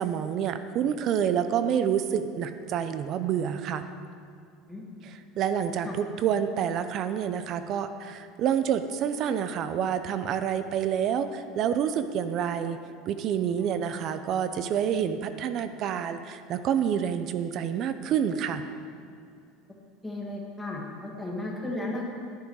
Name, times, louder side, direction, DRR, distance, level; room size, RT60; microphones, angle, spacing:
voice 1, 0.0-3.9 5.0-12.8 13.1-18.7, right 8 dB, 40° right, 10 dB, 0.6 m, -28 dB
voice 2, 4.7-5.1 5.8-6.0 13.6-13.7 20.0-22.1, left 2 dB, 5° left, -2 dB, 2.0 m, -35 dB
11.5 x 10.5 x 4.8 m, 2.5 s
cardioid pair, 155°, 0 cm